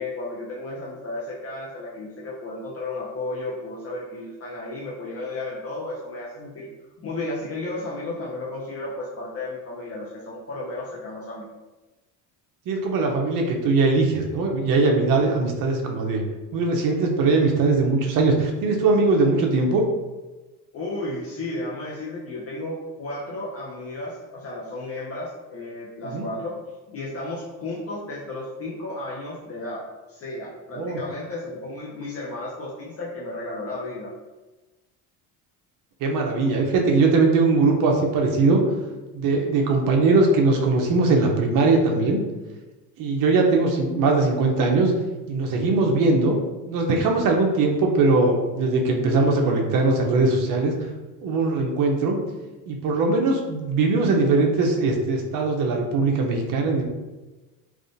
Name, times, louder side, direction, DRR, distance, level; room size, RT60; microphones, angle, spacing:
voice 1, 0.0-6.7 7.0-11.5 20.7-26.6 26.9-34.1, left 2 dB, 40° left, -5 dB, 0.7 m, -33 dB
voice 2, 12.7-16.2 16.5-19.8 26.1-26.2 30.8-31.0 36.0-38.6 39.1-42.2 43.0-44.9 45.3-46.4 46.6-50.7 51.2-52.2 52.7-56.8, right 3 dB, 60° right, 1 dB, 0.7 m, -20 dB
3.5 x 2.4 x 2.5 m, 1.2 s
cardioid pair, 110°, 38 cm